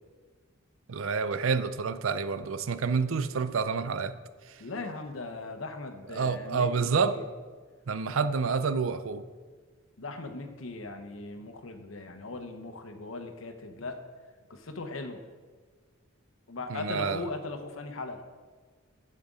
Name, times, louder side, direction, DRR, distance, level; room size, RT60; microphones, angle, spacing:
voice 1, 0.9-4.2 6.1-7.1 7.9-9.2 16.7-17.2, right 5 dB, 80° right, 12 dB, 0.5 m, -28 dB
voice 2, 4.6-7.2 10.0-14.0 14.5-15.2 16.5-18.2, left 3 dB, 80° left, 7 dB, 0.9 m, -39 dB
10.5 x 7.6 x 3.7 m, 1.5 s
head